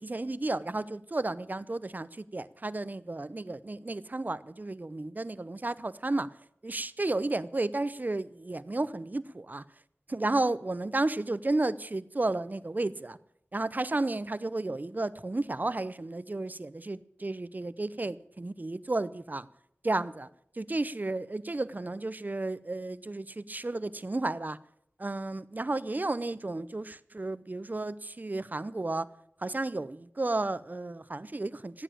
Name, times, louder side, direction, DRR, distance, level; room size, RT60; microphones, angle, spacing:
voice 1, 0.0-6.3 6.6-9.6 10.1-13.2 13.5-19.5 19.8-20.3 20.6-24.6 25.0-29.1 29.4-31.8, right 2 dB, 40° right, 0.6 m, -32 dB
15.0 x 9.1 x 8.8 m
wide cardioid pair, 60°, 5 cm